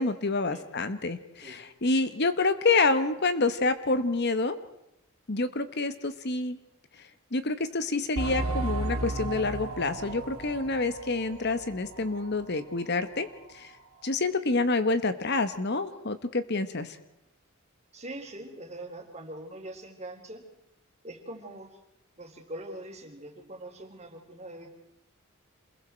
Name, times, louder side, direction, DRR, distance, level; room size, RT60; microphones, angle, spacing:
voice 1, 0.0-4.6 5.3-6.6 7.3-13.3 13.5-13.7 14.0-17.0, left 3 dB, 50° left, 11 dB, 1.2 m, -27 dB
sound 1, 8.2-12.4 12.8-12.9 13.4-13.5, right 2 dB, 90° right, 3.0 m, -34 dB
voice 2, 17.9-20.4 21.0-21.7 22.2-24.7, right 1 dB, 30° right, 2 dB, 3.8 m, -42 dB
27.5 x 22.0 x 4.5 m, 0.86 s
head